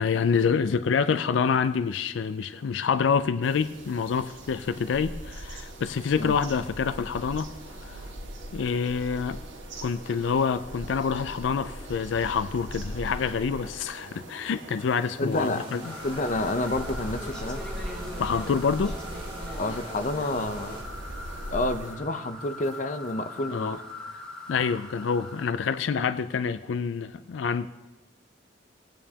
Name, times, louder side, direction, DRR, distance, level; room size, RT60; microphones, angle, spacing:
voice 1, 0.0-8.1 8.5-9.4 9.8-15.9 18.2-19.0 23.5-23.8 24.5-27.7, left 6 dB, 85° left, 13 dB, 0.4 m, -27 dB
Atmos Country Open area in forest, 3.4-21.9, right 1 dB, 85° right, 1.8 m, -40 dB
voice 2, 15.2-15.7 16.0-17.6 19.6-20.8 21.5-23.8, left 2 dB, 40° left, 9 dB, 0.6 m, -29 dB
sound 1, 15.3-20.8, right 1 dB, 30° right, 2.0 m, -42 dB
sound 2, 15.8-25.5, left 2 dB, 5° left, 1.7 m, -42 dB
18.5 x 9.0 x 2.9 m, 1.1 s
head